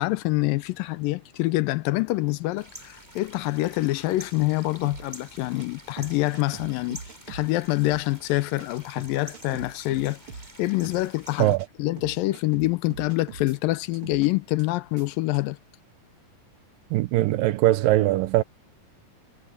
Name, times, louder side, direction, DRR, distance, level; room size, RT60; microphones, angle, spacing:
voice 1, 0.0-7.0 7.3-10.2 10.6-15.6, left 19 dB, 85° left, 2.4 m, -26 dB
sound 1, 2.6-11.6, equal, 5° right, 6.2 m, -48 dB
sound 2, 4.4-4.5 4.8-5.1 5.6-5.7 6.0-7.5 7.8-8.0 8.6-8.7 9.0-10.5 10.8-11.0 11.6-11.7 12.0-13.6 13.9-14.3 14.6-14.7 15.0-15.1 15.3-15.4, right 5 dB, 45° right, 2.2 m, -42 dB
voice 2, 16.9-18.4, right 16 dB, 90° right, 2.5 m, -21 dB
omnidirectional pair, 4.0 m